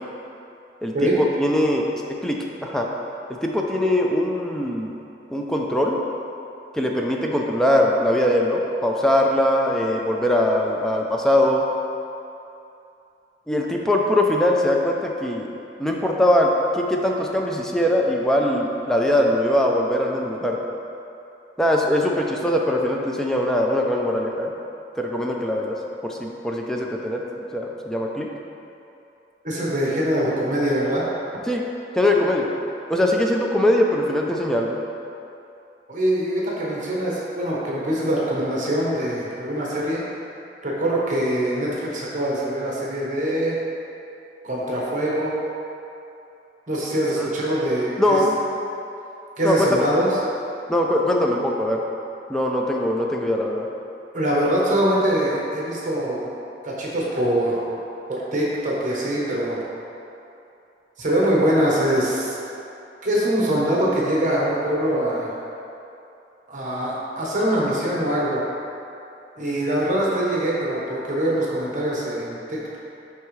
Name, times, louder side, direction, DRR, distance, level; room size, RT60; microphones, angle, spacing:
voice 1, 0.8-2.9 3.3-4.9 5.3-6.0 6.7-11.6 13.5-15.5 15.8-20.6 21.6-24.5 25.0-25.8 26.0-28.3 31.5-31.6 32.0-32.5 32.9-34.8 47.2-47.3 48.0-48.4 49.4-49.9 50.7-51.8 52.3-53.7, left 1 dB, 5° left, -1 dB, 0.4 m, -21 dB
voice 2, 29.4-31.0 35.9-40.0 40.6-43.5 44.4-45.3 46.7-48.2 49.4-50.1 54.1-56.3 56.6-57.7 58.1-59.6 61.0-62.4 63.0-65.3 66.5-68.4 69.4-72.8, right 1 dB, 45° right, -5 dB, 1.1 m, -23 dB
10.0 x 3.5 x 3.2 m, 2.8 s
head